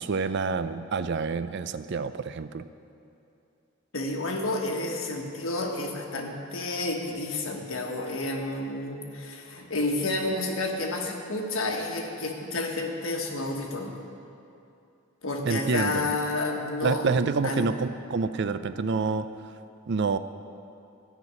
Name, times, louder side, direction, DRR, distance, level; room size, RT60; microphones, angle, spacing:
voice 1, 0.0-2.6 15.4-16.2 16.8-19.3 19.9-20.2, right 4 dB, 55° right, 12 dB, 0.5 m, -27 dB
voice 2, 3.9-13.9 15.2-17.7, left 2 dB, 80° left, 1 dB, 1.6 m, -30 dB
13.5 x 6.1 x 9.5 m, 2.7 s
head